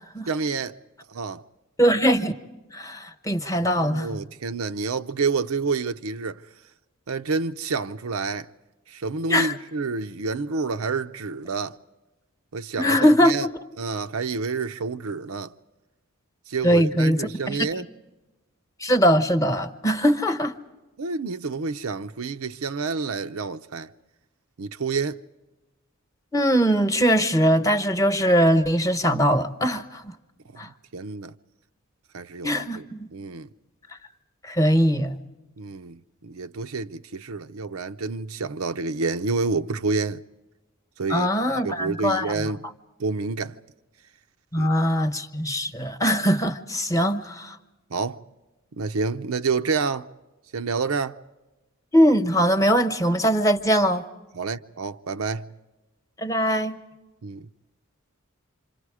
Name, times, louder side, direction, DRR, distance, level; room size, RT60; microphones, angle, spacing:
voice 1, 0.3-0.8 1.1-1.4 3.8-6.4 7.1-8.5 8.9-11.8 12.5-13.5 13.8-15.5 16.5-17.8 21.0-23.9 24.6-25.2 30.9-31.3 32.1-32.8 33.1-33.5 35.6-40.2 41.0-41.3 41.6-42.7 43.0-43.6 44.6-44.7 46.9-47.0 47.9-48.2 48.8-50.1 50.5-51.2 54.3-55.5 57.2-57.5, right 4 dB, 90° right, 0.6 m, -28 dB
voice 2, 1.8-2.3 2.7-4.2 9.3-9.5 12.8-13.5 16.6-17.7 18.8-20.5 26.3-30.1 30.6-30.7 32.4-33.1 34.4-35.2 41.1-42.5 44.5-47.6 51.9-54.0 56.2-56.8, equal, 15° left, 1.0 m, -21 dB
28.0 x 26.5 x 4.9 m
head